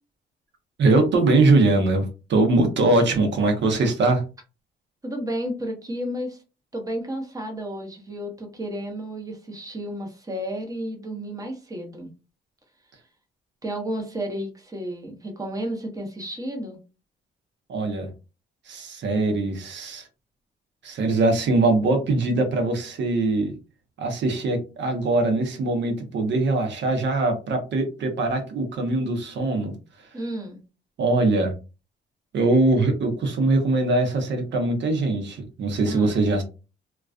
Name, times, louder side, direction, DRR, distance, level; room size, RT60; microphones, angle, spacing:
voice 1, 0.8-4.2 17.7-18.1 18.7-20.1 20.8-23.5 24.0-29.7 31.0-31.5 32.3-36.4, right 2 dB, 65° right, 5 dB, 0.8 m, -22 dB
voice 2, 5.0-6.4 6.7-12.1 13.6-16.8 30.1-30.6 35.9-36.3, equal, 15° right, 2 dB, 0.8 m, -32 dB
2.3 x 2.2 x 2.3 m, 0.31 s
cardioid pair, 90°, 20 cm